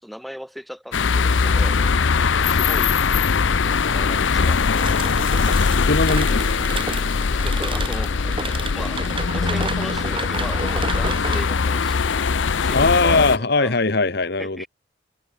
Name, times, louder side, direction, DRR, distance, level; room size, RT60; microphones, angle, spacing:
voice 1, 0.0-2.0 2.4-3.0 3.5-5.2 7.3-8.4 8.7-13.7 14.4-14.7, equal, ahead, 4.9 m, -37 dB
sound 1, 0.9-13.4, left 5 dB, 75° left, 0.6 m, -21 dB
sound 2, 4.8-13.5, right 3 dB, 25° right, 4.4 m, -33 dB
voice 2, 5.8-6.4 12.7-14.6, left 3 dB, 55° left, 1.4 m, -20 dB
open air
head